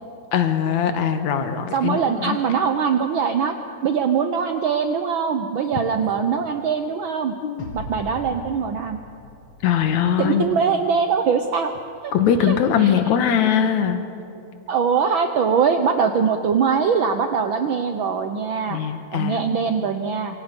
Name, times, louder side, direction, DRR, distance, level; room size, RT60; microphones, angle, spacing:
voice 1, 0.3-2.4 7.4-7.7 9.6-10.4 12.1-14.0 18.7-19.5, left 8 dB, 80° left, 7 dB, 2.7 m, -21 dB
voice 2, 1.7-3.5 3.8-7.3 7.7-9.0 10.2-11.7 12.0-12.1 12.4-13.0 14.7-18.8 19.1-20.4, right 6 dB, 80° right, 7 dB, 1.1 m, -22 dB
sound 1, 7.6-10.9, left 2 dB, 50° left, 2.7 m, -40 dB
27.0 x 25.5 x 5.3 m, 2.6 s
omnidirectional pair, 3.3 m